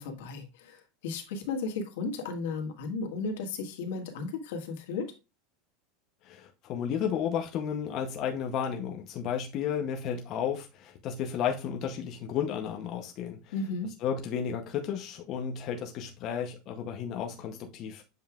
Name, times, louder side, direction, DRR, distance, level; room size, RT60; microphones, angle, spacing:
voice 1, 0.0-5.1 13.5-13.9, left 4 dB, 80° left, 1.6 m, -34 dB
voice 2, 6.2-13.5 14.0-18.0, left 8 dB, 40° left, 0.7 m, -33 dB
7.5 x 5.4 x 2.3 m
supercardioid pair, 160°, 0 cm